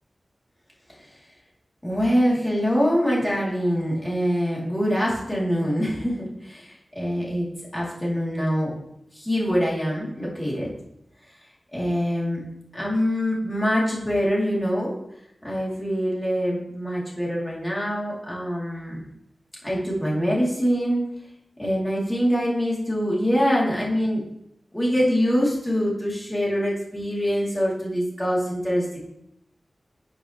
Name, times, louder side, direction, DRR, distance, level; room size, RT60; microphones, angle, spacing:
voice 1, 1.8-8.7 9.1-10.7 11.7-12.4 12.7-14.9 15.4-19.0 19.6-21.1 21.6-24.2 24.7-29.0, equal, 15° left, -5 dB, 3.9 m, -24 dB
12.0 x 6.8 x 3.6 m, 0.78 s
wide cardioid pair, 75°, 0 cm